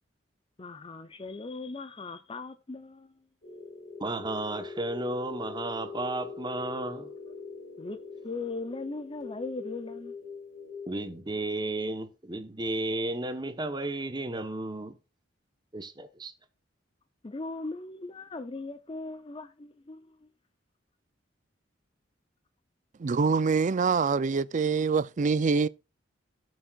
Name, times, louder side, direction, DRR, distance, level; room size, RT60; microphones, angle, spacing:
voice 1, 0.6-3.1 7.8-8.0 8.2-10.2 17.2-20.3, left 3 dB, 30° left, 0.6 m, -38 dB
sound 1, 3.4-11.2, left 4 dB, 50° left, 4.3 m, -43 dB
voice 2, 4.0-7.1 10.9-15.0 15.7-16.3, right 2 dB, 25° right, 1.0 m, -33 dB
voice 3, 23.0-25.7, right 5 dB, 40° right, 0.4 m, -25 dB
17.5 x 6.4 x 2.4 m
head